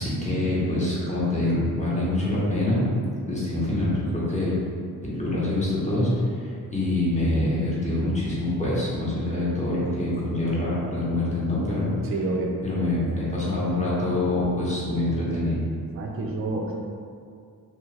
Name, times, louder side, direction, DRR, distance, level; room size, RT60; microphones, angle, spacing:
voice 1, 0.0-2.8 3.2-4.6 5.0-6.1 6.4-11.9 12.6-15.6, left 1 dB, 20° left, -7 dB, 0.9 m, -25 dB
voice 2, 12.0-12.5 15.9-16.8, right 3 dB, 40° right, 0 dB, 0.4 m, -28 dB
2.8 x 2.2 x 3.2 m, 2.2 s
cardioid pair, 85°, 36 cm